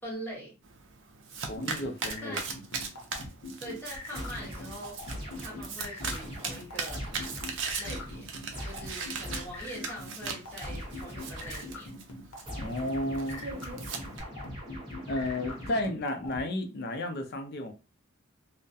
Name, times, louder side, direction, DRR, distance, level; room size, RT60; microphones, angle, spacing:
voice 1, 0.0-0.5 2.2-2.5 3.6-5.0 5.4-7.0 7.8-8.3 8.6-11.9, equal, 10° left, 1.0 m, -43 dB
Domestic sounds home sounds, 0.6-14.2, right 5 dB, 60° right, 0.5 m, -39 dB
voice 2, 1.5-2.4 12.6-13.4 15.1-17.7, left 1 dB, 50° left, 0.4 m, -32 dB
sound 1, 1.6-16.4, left 3 dB, 85° left, 0.7 m, -42 dB
sound 2, 4.1-9.8 10.6-11.9 12.5-16.1, equal, 25° right, 1.0 m, -42 dB
2.2 x 2.1 x 2.6 m
head